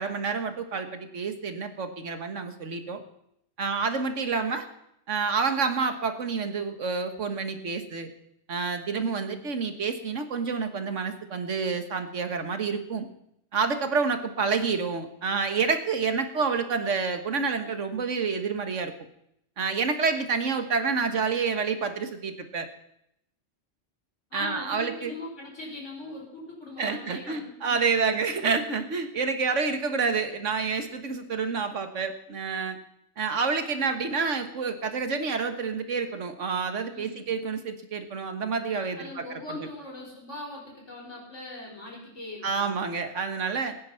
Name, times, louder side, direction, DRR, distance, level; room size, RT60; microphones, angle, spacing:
voice 1, 0.0-3.0 3.6-4.7 5.1-8.1 8.5-13.1 13.5-18.9 19.6-22.7 24.3-25.1 26.8-32.8 33.2-39.7 42.4-43.7, right 5 dB, 90° right, 7 dB, 1.8 m, -28 dB
voice 2, 24.3-28.2 36.9-37.2 39.0-42.7, left 2 dB, 80° left, -2 dB, 5.5 m, -41 dB
20.5 x 9.7 x 5.8 m, 0.76 s
omnidirectional pair, 1.2 m